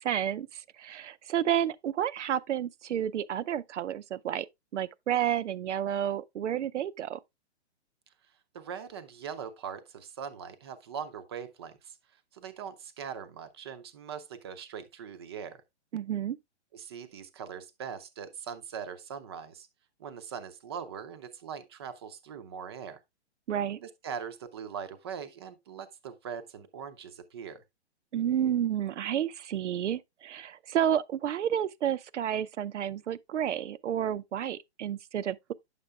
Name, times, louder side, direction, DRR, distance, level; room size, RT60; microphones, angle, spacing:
voice 1, 0.0-4.5 4.7-7.2 15.9-16.4 23.5-23.8 28.1-35.5, right 10 dB, 85° right, 0.6 m, -30 dB
voice 2, 8.5-12.0 12.3-15.6 16.7-19.7 20.0-23.0 23.8-27.6, right 7 dB, 25° right, 0.5 m, -41 dB
9.5 x 6.8 x 2.3 m
hypercardioid pair, 160°, 34 cm